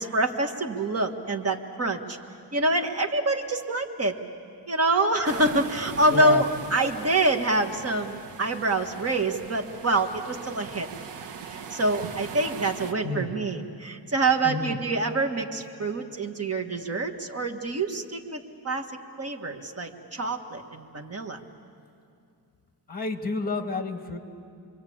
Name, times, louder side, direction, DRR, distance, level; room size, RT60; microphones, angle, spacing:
voice 1, 0.0-2.2 2.5-4.2 4.7-10.9 11.5-18.9 19.2-21.4, right 2 dB, 35° right, 4 dB, 1.6 m, -26 dB
sound 1, 5.2-12.9, right 7 dB, 85° right, 1.3 m, -40 dB
voice 2, 6.1-6.4 13.0-13.3 14.4-14.8 22.9-24.2, left 3 dB, 20° left, 6 dB, 1.7 m, -30 dB
27.5 x 23.0 x 8.6 m, 2.4 s
wide cardioid pair, 140°, 41 cm